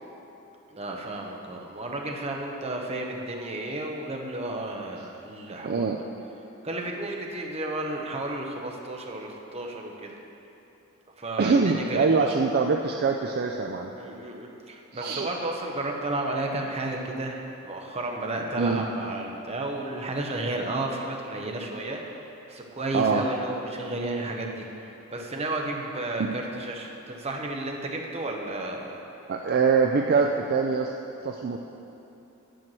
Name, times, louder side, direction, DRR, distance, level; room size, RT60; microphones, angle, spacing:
voice 1, 0.7-5.9 6.6-10.1 11.2-12.3 13.9-29.0, right 2 dB, 30° right, 1 dB, 0.8 m, -32 dB
voice 2, 5.6-6.0 11.4-13.9 14.9-15.3 18.6-18.8 22.9-23.3 29.3-30.9 31.2-31.6, right 4 dB, 45° right, 2 dB, 0.4 m, -24 dB
9.1 x 4.5 x 7.5 m, 2.9 s
head